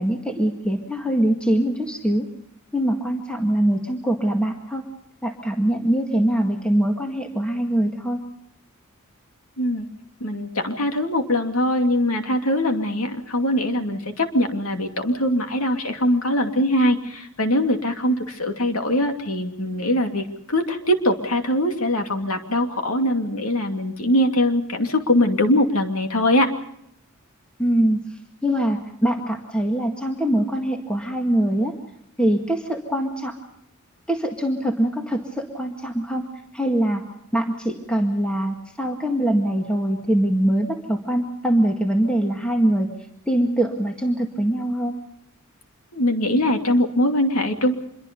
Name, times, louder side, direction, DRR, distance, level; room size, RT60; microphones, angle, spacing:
voice 1, 0.0-2.3 2.7-4.8 5.2-8.2 27.6-28.0 28.4-31.7 32.2-33.3 34.1-36.3 36.5-37.0 37.3-42.9 43.3-44.9, right 1 dB, 5° left, 2 dB, 1.9 m, -23 dB
voice 2, 10.2-26.5 45.9-47.7, left 1 dB, 80° left, 5 dB, 2.7 m, -22 dB
26.0 x 23.0 x 5.4 m, 0.76 s
head